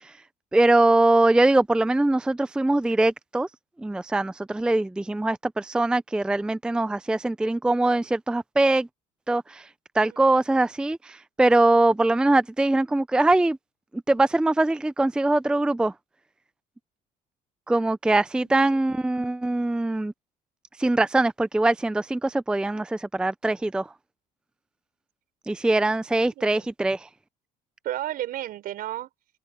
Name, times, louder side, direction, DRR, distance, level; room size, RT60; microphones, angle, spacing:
voice 1, 0.5-3.5 3.8-8.9 9.3-9.6 10.0-13.6 14.1-15.9 17.7-20.1 20.8-23.9 25.5-27.0, right 2 dB, 5° right, 0.5 m, -22 dB
voice 2, 10.0-10.4 18.4-18.8 26.4-26.7 27.8-29.1, right 13 dB, 70° right, 6.1 m, -33 dB
open air
cardioid pair, 130°, 16 cm